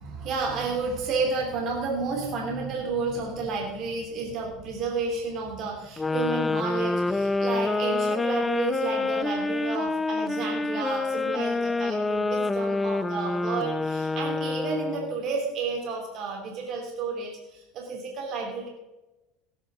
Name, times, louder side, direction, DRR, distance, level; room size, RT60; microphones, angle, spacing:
voice 1, 0.0-18.7, right 4 dB, 50° right, 0 dB, 3.1 m, -31 dB
sound 1, 6.0-15.2, left 3 dB, 15° left, 0.5 m, -27 dB
17.5 x 9.5 x 3.8 m, 1.0 s
supercardioid pair, 105°, 0 cm